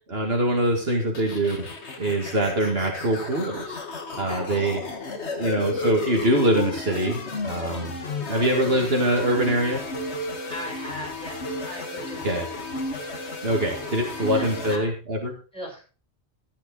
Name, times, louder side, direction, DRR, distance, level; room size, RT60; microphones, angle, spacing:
voice 1, 0.1-1.6 2.0-3.8 4.2-4.8 5.4-8.0 8.3-9.8 12.2-12.5 13.4-15.3, right 1 dB, 65° right, 1 dB, 2.3 m, -24 dB
sound 1, 1.1-14.8, left 3 dB, 80° left, 2.0 m, -33 dB
voice 2, 4.3-4.7 5.1-5.7 8.2-9.0 10.5-12.7 13.5-14.9 15.5-15.8, left 1 dB, 5° left, -4 dB, 7.6 m, -40 dB
13.0 x 10.0 x 4.0 m, 0.35 s
omnidirectional pair, 1.1 m